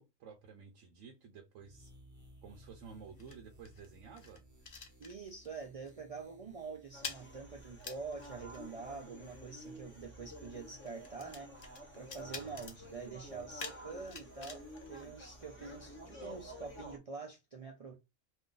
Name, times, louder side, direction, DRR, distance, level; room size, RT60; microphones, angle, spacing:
voice 1, 0.0-1.9 2.4-4.4 12.2-13.5, right 5 dB, 85° right, 1.0 m, -53 dB
sound 1, 1.5-16.9, right 1 dB, 20° right, 0.6 m, -60 dB
sound 2, 2.2-5.6 5.8-6.1 6.4-15.8, left 5 dB, 50° left, 0.5 m, -50 dB
voice 2, 5.0-11.5 12.0-17.9, right 4 dB, 70° right, 0.3 m, -46 dB
sound 3, 6.9-17.0, equal, 10° left, 0.7 m, -52 dB
2.5 x 2.4 x 3.7 m
omnidirectional pair, 1.3 m